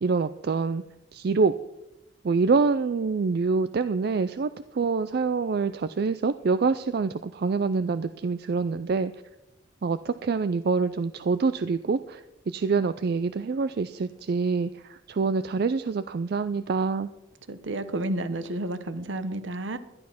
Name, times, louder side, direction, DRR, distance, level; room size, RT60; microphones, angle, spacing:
voice 1, 0.0-0.8 1.1-1.5 2.2-9.1 9.8-12.2 12.5-17.1, right 4 dB, 55° right, 12 dB, 0.4 m, -26 dB
voice 2, 17.5-19.8, right 1 dB, 70° right, 12 dB, 0.9 m, -31 dB
11.5 x 10.5 x 5.8 m, 0.91 s
head